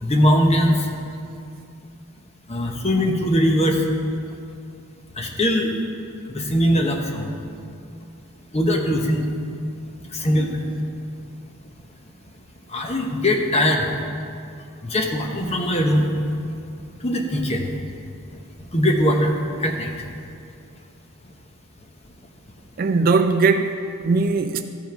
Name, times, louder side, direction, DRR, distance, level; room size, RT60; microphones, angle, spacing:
voice 1, 0.0-0.8 2.5-3.8 5.2-5.7 6.3-7.3 8.5-9.3 10.2-10.6 12.7-13.9 14.9-16.1 17.0-17.6 18.7-19.3 19.6-19.9, equal, 30° left, 0.9 m, -20 dB
voice 2, 22.8-24.6, right 4 dB, 40° right, 0.3 m, -20 dB
14.0 x 5.4 x 4.6 m
head